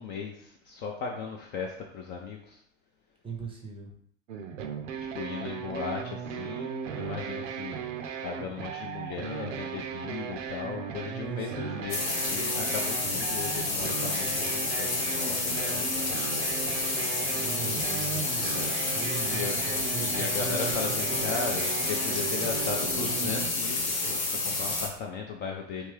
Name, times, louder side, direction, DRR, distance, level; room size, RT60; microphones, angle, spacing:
voice 1, 0.0-2.6 5.1-7.9 8.2-16.2 18.1-18.7 19.3-19.6 20.0-25.9, left 5 dB, 25° left, 1 dB, 0.4 m, -37 dB
voice 2, 3.2-4.0 11.1-11.8 17.2-21.4, right 5 dB, 15° right, 1 dB, 0.6 m, -40 dB
sound 1, 4.3-23.5, right 7 dB, 65° right, 0.6 m, -36 dB
sound 2, 11.9-24.9, left 3 dB, 90° left, 0.8 m, -30 dB
3.4 x 2.8 x 3.2 m, 0.64 s
hypercardioid pair, 95°, 40 cm